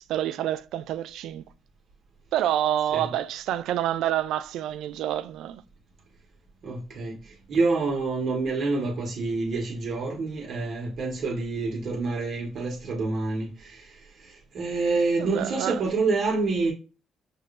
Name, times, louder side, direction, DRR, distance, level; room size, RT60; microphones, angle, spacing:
voice 1, 0.0-1.4 2.3-5.6 15.2-15.8, right 12 dB, 85° right, 0.3 m, -28 dB
voice 2, 6.6-16.7, right 3 dB, 60° right, 1.2 m, -27 dB
5.8 x 2.5 x 3.2 m
cardioid pair, 90°, 0 cm